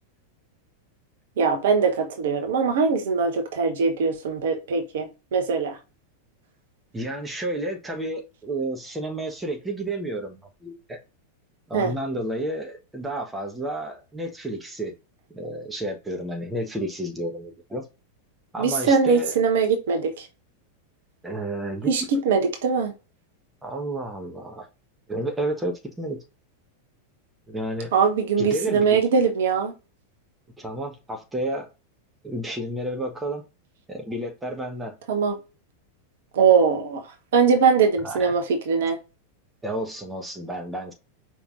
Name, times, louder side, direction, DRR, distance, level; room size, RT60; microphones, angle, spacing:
voice 1, 1.4-5.8 11.7-11.9 18.6-20.3 21.9-22.9 27.9-29.7 35.1-35.3 36.3-37.0 37.3-39.0, right 5 dB, 60° right, 1.0 m, -21 dB
voice 2, 6.9-11.0 11.7-14.9 15.3-17.9 18.5-19.3 21.2-21.9 23.6-24.7 25.1-26.2 27.5-27.9 28.4-29.0 30.6-31.7 32.2-33.4 33.9-34.9 38.0-38.3 39.6-40.9, right 1 dB, 10° right, 1.2 m, -31 dB
5.1 x 3.3 x 2.5 m
figure-of-eight pair, 90°, 0 cm